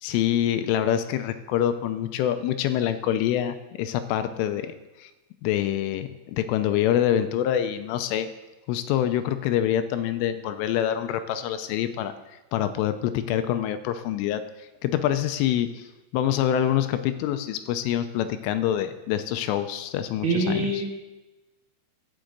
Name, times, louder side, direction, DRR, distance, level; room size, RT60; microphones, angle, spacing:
voice 1, 0.0-4.7 5.0-5.1 5.4-8.3 8.7-12.1 12.5-15.9 16.1-20.7, left 11 dB, 80° left, 10 dB, 3.1 m, -26 dB
voice 2, 20.2-20.9, right 2 dB, 55° right, -3 dB, 2.4 m, -24 dB
11.5 x 7.1 x 7.8 m, 1.1 s
omnidirectional pair, 5.7 m